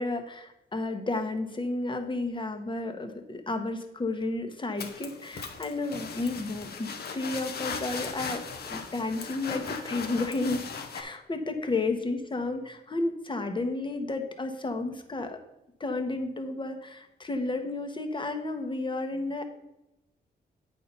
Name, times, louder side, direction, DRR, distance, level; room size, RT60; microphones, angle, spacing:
voice 1, 0.0-15.4 15.8-19.5, left 2 dB, 30° left, 6 dB, 1.2 m, -32 dB
sound 1, 4.8-11.0, left 5 dB, 65° left, 1.0 m, -38 dB
8.4 x 4.4 x 5.4 m, 0.90 s
cardioid pair, 75°, 17 cm